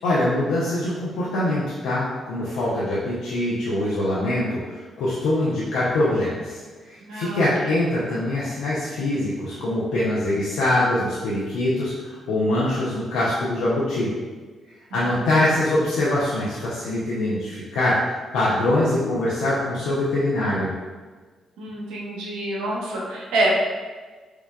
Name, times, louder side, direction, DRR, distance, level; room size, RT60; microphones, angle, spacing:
voice 1, 0.0-6.6 6.9-14.1 14.9-18.0 18.3-20.7, left 1 dB, 85° left, -8 dB, 0.5 m, -23 dB
voice 2, 7.0-7.8 14.9-15.3 21.6-23.5, right 2 dB, 80° right, -4 dB, 0.7 m, -27 dB
4.6 x 2.2 x 2.3 m, 1.4 s
supercardioid pair, 55°, 0 cm